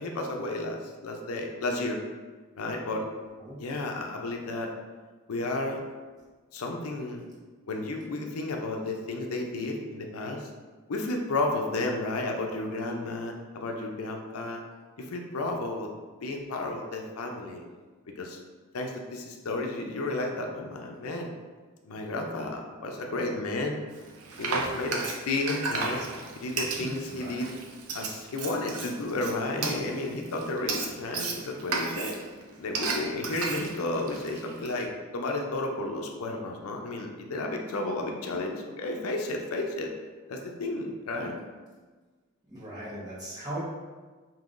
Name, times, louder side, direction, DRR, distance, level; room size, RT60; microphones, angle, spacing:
voice 1, 0.0-2.0 2.6-3.1 3.6-4.7 5.3-5.8 6.5-7.3 7.7-10.5 10.9-14.6 15.0-15.9 16.2-17.7 18.2-18.4 18.7-21.3 21.9-23.8 24.4-26.0 26.4-27.5 27.9-32.2 32.6-39.9 40.3-41.4, left 2 dB, 80° left, 2 dB, 0.5 m, -32 dB
Frying (food), 23.9-34.9, right 4 dB, 90° right, 0.5 m, -34 dB
voice 2, 26.8-27.3 42.5-43.6, right 1 dB, 20° right, -9 dB, 1.1 m, -39 dB
5.3 x 2.8 x 2.5 m, 1.4 s
head